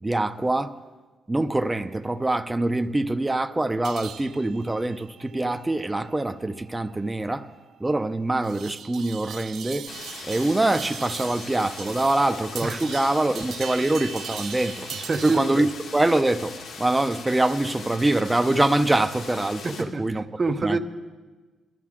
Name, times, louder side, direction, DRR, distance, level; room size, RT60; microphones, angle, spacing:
voice 1, 0.0-0.8 1.3-7.5 7.8-9.9 10.3-14.9 15.2-20.2 20.6-20.8, right 2 dB, 10° right, 0.5 m, -24 dB
sound 1, 3.8-15.7, right 8 dB, 65° right, 0.6 m, -40 dB
sound 2, 9.9-19.8, left 4 dB, 65° left, 1.8 m, -40 dB
voice 2, 15.1-15.6 19.6-20.8, right 3 dB, 30° right, 0.8 m, -27 dB
21.5 x 13.5 x 3.7 m
cardioid pair, 145°, 0 cm